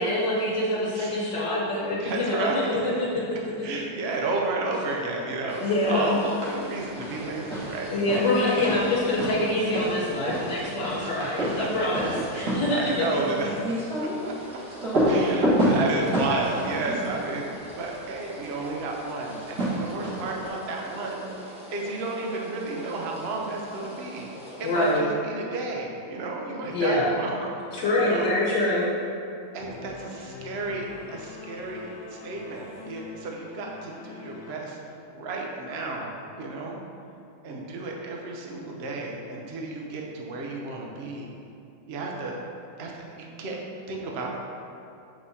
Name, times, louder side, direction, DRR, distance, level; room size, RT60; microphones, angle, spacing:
voice 1, 0.0-3.8 5.6-6.2 7.9-13.4 24.6-25.1 26.7-27.1 27.7-28.9, left 1 dB, 65° left, -6 dB, 1.6 m, -25 dB
voice 2, 2.0-2.6 3.6-7.9 8.2-8.4 11.0-11.7 12.3-13.6 14.0-14.1 15.0-17.5 17.7-24.3 24.6-28.3 29.5-34.8 35.1-36.8 37.4-41.3 41.9-42.4 42.8-43.6 43.9-44.4, right 3 dB, 80° right, -1 dB, 0.5 m, -32 dB
sound 1, 5.5-25.0, equal, 5° right, 0.5 m, -43 dB
sound 2, 6.1-6.7 7.0-18.0 19.2-20.4, equal, 55° right, 2.0 m, -29 dB
Singing / Musical instrument, 29.6-34.6, left 5 dB, 85° left, 1.4 m, -44 dB
7.5 x 5.4 x 2.7 m, 2.6 s
omnidirectional pair, 2.1 m